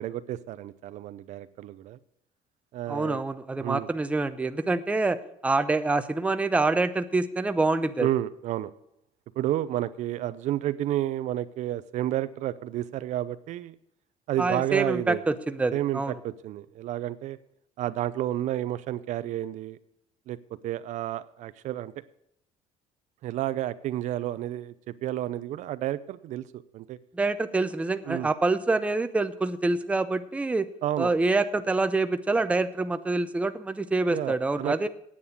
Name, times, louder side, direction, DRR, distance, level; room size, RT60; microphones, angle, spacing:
voice 1, 0.0-2.0 2.7-3.2 3.6-3.9 8.0-8.7 9.4-13.7 14.3-15.2 15.7-17.4 17.8-19.8 20.3-20.4 20.6-22.0 23.2-24.7 25.0-27.0 28.0-28.3 30.8-31.1 34.1-34.9, right 13 dB, 60° right, 15 dB, 0.5 m, -31 dB
voice 2, 2.9-8.1 14.4-16.1 27.1-30.7 31.0-34.9, right 3 dB, 10° right, 10 dB, 0.6 m, -26 dB
9.5 x 8.4 x 7.2 m, 0.79 s
cardioid pair, 130°, 14 cm